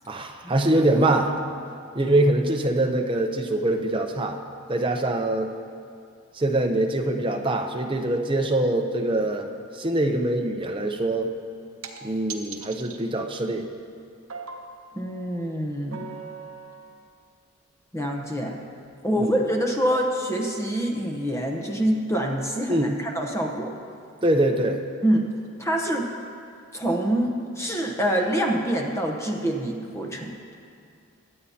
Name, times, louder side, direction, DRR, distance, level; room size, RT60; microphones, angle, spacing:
voice 1, 0.1-1.4 1.9-4.4 4.7-5.5 6.4-9.5 9.7-11.3 12.0-13.7 19.2-19.3 22.7-23.0 24.2-24.8, right 1 dB, 20° right, 3 dB, 0.7 m, -23 dB
sound 1, 11.8-12.0 12.3-13.0 14.3-14.8 15.9-16.9 18.0-18.1 18.8-18.9, right 5 dB, 75° right, 1.0 m, -38 dB
voice 2, 14.9-16.0 17.9-18.6 19.0-23.8 25.0-25.3 25.6-26.1 26.7-30.5, right 1 dB, 15° left, 1 dB, 0.8 m, -26 dB
22.5 x 8.5 x 2.8 m, 2.4 s
head